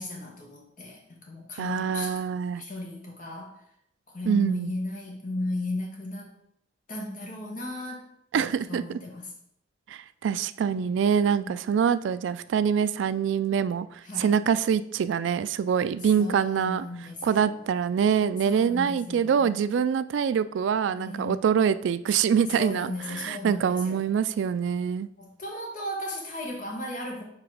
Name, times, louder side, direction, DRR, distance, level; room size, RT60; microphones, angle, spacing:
voice 1, 0.0-2.2 2.6-3.5 4.1-6.3 6.9-8.1 8.3-9.3 10.7-10.9 11.4-11.5 14.0-14.3 16.2-17.6 18.4-19.5 20.9-21.3 22.5-24.1 24.7-24.8 25.2-27.2, left 1 dB, 45° left, -1 dB, 1.5 m, -36 dB
voice 2, 1.6-2.6 4.3-4.7 8.3-9.0 9.9-16.8 17.2-25.1, right 7 dB, 70° right, 13 dB, 0.3 m, -25 dB
4.9 x 4.1 x 5.0 m, 0.72 s
head